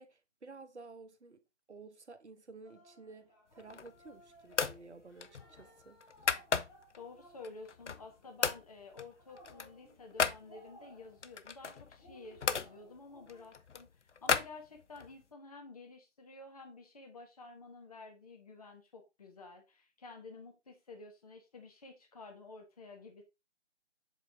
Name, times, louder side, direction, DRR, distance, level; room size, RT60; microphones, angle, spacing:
voice 1, 0.0-1.4 1.7-6.0, right 3 dB, 70° right, 1.0 m, -53 dB
sound 1, 2.6-13.5, equal, 15° left, 1.4 m, -61 dB
sound 2, 3.5-4.1 4.5-4.8 5.2-7.0 7.4-8.1 8.4-8.7 9.0-10.4 11.2-12.7 13.3-15.1, left 6 dB, 75° left, 0.6 m, -35 dB
voice 2, 6.9-23.2, left 3 dB, 30° left, 1.4 m, -51 dB
7.4 x 4.1 x 3.5 m
figure-of-eight pair, 155°, 36 cm